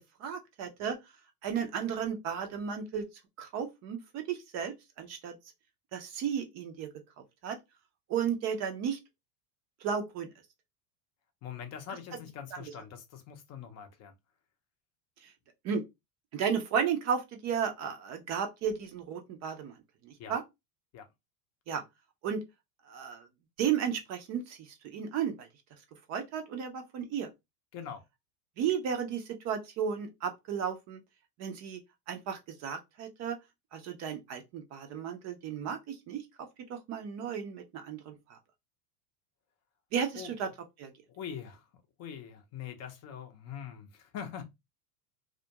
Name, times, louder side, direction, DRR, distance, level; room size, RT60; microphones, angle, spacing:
voice 1, 0.2-1.0 1.4-3.1 3.4-5.4 5.9-6.9 7.4-7.6 8.1-9.0 9.8-10.3 15.2-15.3 15.6-15.8 16.3-19.7 20.0-20.4 21.7-21.8 22.2-22.4 22.9-23.3 23.6-25.5 26.1-27.3 28.6-31.0 31.4-31.8 32.1-33.4 33.7-36.2 36.7-38.4 39.9-40.5 40.8-40.9, right 7 dB, 35° right, 0.5 m, -34 dB
voice 2, 11.4-14.1 20.2-20.4 20.9-21.1 27.7-28.0 40.1-40.4 41.1-41.7 42.0-44.4, left 8 dB, 35° left, 0.5 m, -43 dB
2.3 x 2.1 x 2.7 m
hypercardioid pair, 105°, 49 cm